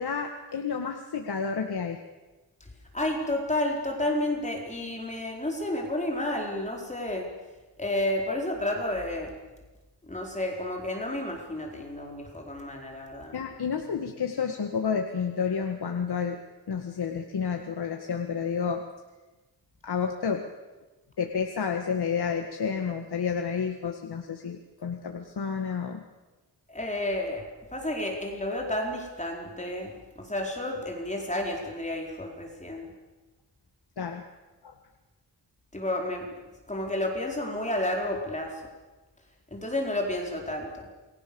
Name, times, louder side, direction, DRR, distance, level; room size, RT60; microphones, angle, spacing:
voice 1, 0.0-2.0 13.3-16.4 16.7-18.8 19.8-20.4 21.2-26.0 34.0-34.2 34.6-34.7, left 6 dB, 65° left, 4 dB, 1.9 m, -30 dB
voice 2, 2.9-7.3 7.8-9.3 10.0-13.4 26.7-27.5 27.7-32.9 35.7-36.3 36.7-38.5 39.5-40.9, left 1 dB, 15° left, 0 dB, 4.5 m, -31 dB
28.5 x 22.5 x 7.1 m, 1.2 s
wide cardioid pair, 115°, 42 cm